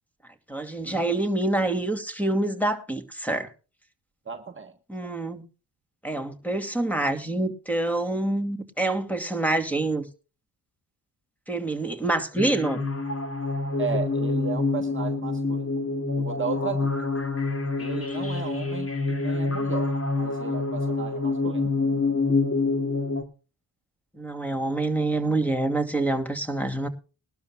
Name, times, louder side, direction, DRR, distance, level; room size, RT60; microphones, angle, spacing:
voice 1, 0.5-3.5 4.9-5.4 6.0-10.1 11.5-12.9 24.1-26.9, right 2 dB, 5° left, 8 dB, 2.6 m, -26 dB
voice 2, 4.2-4.7 13.8-15.7 16.2-17.1 17.8-21.7, right 6 dB, 30° right, 4 dB, 1.3 m, -35 dB
sound 1, 12.4-23.2, left 3 dB, 35° left, 2.5 m, -27 dB
21.5 x 12.0 x 2.3 m, 0.32 s
cardioid pair, 65°, 42 cm